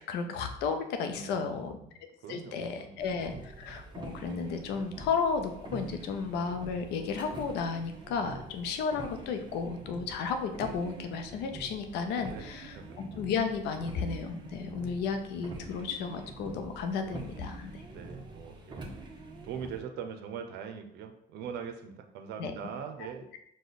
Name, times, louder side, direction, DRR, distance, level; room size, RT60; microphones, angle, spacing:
voice 1, 0.1-1.8 2.3-17.9 22.4-22.5 23.0-23.4, left 5 dB, 85° left, 6 dB, 0.6 m, -33 dB
voice 2, 1.1-1.9 2.2-3.3 12.3-12.5 12.7-13.0 17.9-18.9 19.4-23.4, right 7 dB, 80° right, 7 dB, 0.6 m, -42 dB
sound 1, 3.0-19.8, right 2 dB, 25° right, 0.8 m, -45 dB
4.9 x 2.3 x 4.1 m, 0.73 s
cardioid pair, 110°, 17 cm